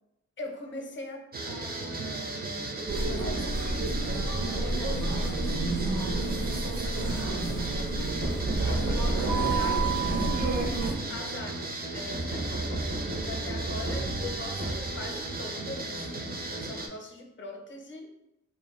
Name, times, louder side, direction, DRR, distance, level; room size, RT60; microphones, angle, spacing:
voice 1, 0.4-11.5 11.9-12.5 12.9-18.1, left 2 dB, 40° left, 3 dB, 0.6 m, -43 dB
sound 1, 1.3-16.9, right 2 dB, 30° right, 0.4 m, -35 dB
sound 2, 2.9-10.9, right 2 dB, 65° right, 0.7 m, -29 dB
sound 3, 8.2-11.2 12.1-15.4, right 1 dB, 90° right, 1.1 m, -35 dB
2.5 x 2.2 x 3.0 m, 0.86 s
cardioid pair, 50°, 30 cm